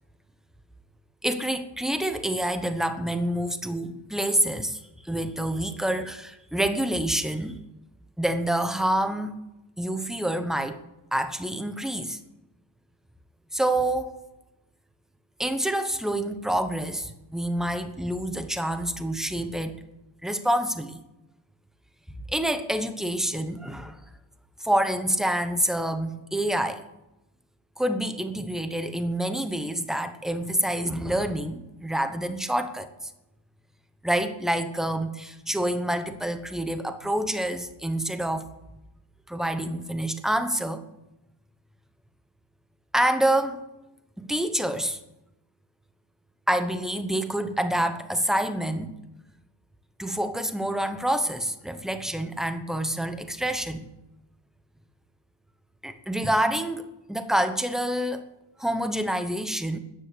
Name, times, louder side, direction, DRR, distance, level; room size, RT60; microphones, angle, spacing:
voice 1, 1.2-7.6 8.2-9.4 9.8-10.8 11.1-12.2 13.5-14.1 15.4-19.8 20.2-21.0 22.3-24.0 24.6-26.9 27.8-33.1 34.0-38.5 39.3-40.8 42.9-43.6 44.2-45.0 46.5-49.0 50.0-53.9 55.8-56.8 57.1-58.2 58.6-59.8, right 1 dB, ahead, 8 dB, 1.0 m, -27 dB
13.5 x 9.9 x 8.4 m, 0.92 s
wide cardioid pair, 170°, 47 cm